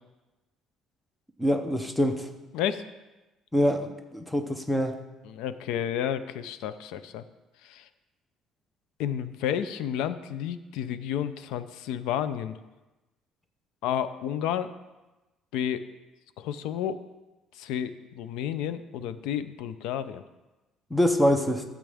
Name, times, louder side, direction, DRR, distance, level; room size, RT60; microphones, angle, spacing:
voice 1, 1.4-2.3 3.5-5.0 20.9-21.6, equal, 5° left, 6 dB, 0.7 m, -25 dB
voice 2, 5.3-7.2 7.6-7.9 9.0-12.5 13.8-14.7 15.5-15.8 16.4-17.0 17.6-20.2, left 9 dB, 90° left, 13 dB, 0.5 m, -31 dB
12.5 x 7.3 x 3.5 m, 1.1 s
cardioid pair, 165°, 0 cm